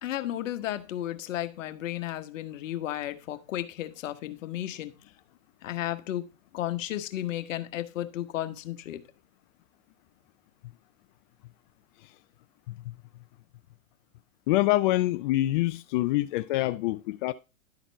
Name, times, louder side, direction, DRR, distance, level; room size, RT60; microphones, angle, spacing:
voice 1, 0.0-5.0 5.6-9.1, left 13 dB, 65° left, 1.2 m, -34 dB
voice 2, 14.5-17.3, left 17 dB, 40° left, 0.4 m, -25 dB
11.5 x 4.1 x 4.4 m
hypercardioid pair, 120°, 41 cm